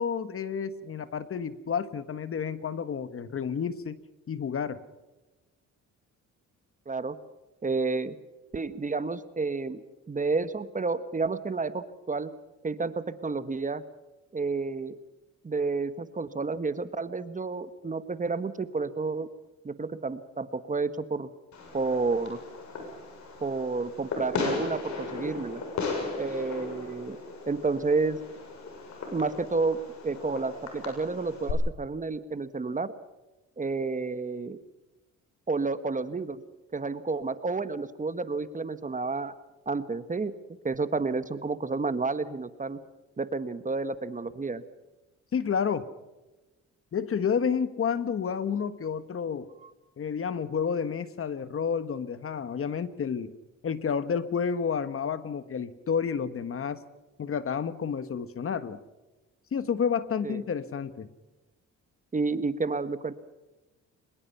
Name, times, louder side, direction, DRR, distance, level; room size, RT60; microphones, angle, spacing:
voice 1, 0.0-4.0 4.3-4.8 45.3-45.9 46.9-49.5 50.0-53.3 53.6-56.8 57.2-58.8 59.5-61.1, left 6 dB, 45° left, 14 dB, 1.4 m, -30 dB
voice 2, 6.9-7.2 7.6-8.1 8.5-12.3 12.6-13.8 14.3-15.0 15.4-19.3 19.6-21.3 21.7-22.4 23.4-25.6 26.2-27.2 27.5-28.2 29.1-29.8 30.0-32.9 33.6-34.6 35.5-36.4 36.7-39.3 39.7-40.3 40.6-42.8 43.2-44.6 49.6-49.7 60.2-60.4 62.1-63.1, right 4 dB, 25° right, 13 dB, 1.4 m, -30 dB
Fireworks, 21.5-31.5, left 4 dB, 70° left, 6.9 m, -37 dB
23.5 x 21.0 x 5.8 m, 1.1 s
cardioid pair, 90°, 30 cm